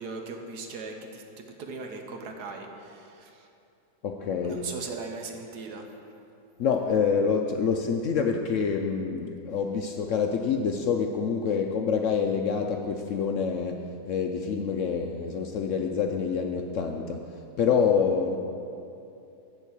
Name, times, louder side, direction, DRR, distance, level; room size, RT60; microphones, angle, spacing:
voice 1, 0.0-3.5 4.4-5.9, right 3 dB, 75° right, 3 dB, 1.5 m, -39 dB
voice 2, 4.0-4.7 6.6-18.4, left 6 dB, 65° left, 3 dB, 0.8 m, -27 dB
11.5 x 4.6 x 8.3 m, 2.7 s
omnidirectional pair, 1.7 m